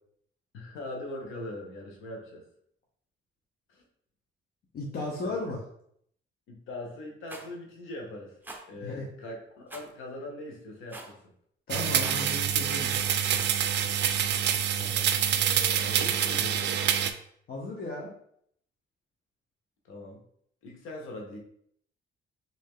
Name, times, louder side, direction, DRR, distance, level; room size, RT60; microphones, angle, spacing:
voice 1, 0.5-2.4 3.7-3.8 5.2-5.4 6.5-8.4 8.7-11.2 14.7-16.8 19.8-20.2 20.6-21.4, left 1 dB, 90° left, 0 dB, 1.0 m, -41 dB
voice 2, 4.7-5.6 8.8-9.1 11.7-12.9 17.5-18.1, left 2 dB, 50° left, -2 dB, 0.7 m, -35 dB
Rattle, 7.3-7.5 8.4-8.6 9.7-9.9 10.9-11.2 11.9-12.2, right 2 dB, 10° right, 0.7 m, -43 dB
sound 1, 11.7-17.1, right 9 dB, 60° right, 0.4 m, -26 dB
3.1 x 2.7 x 3.6 m, 0.69 s
cardioid pair, 90°, 20 cm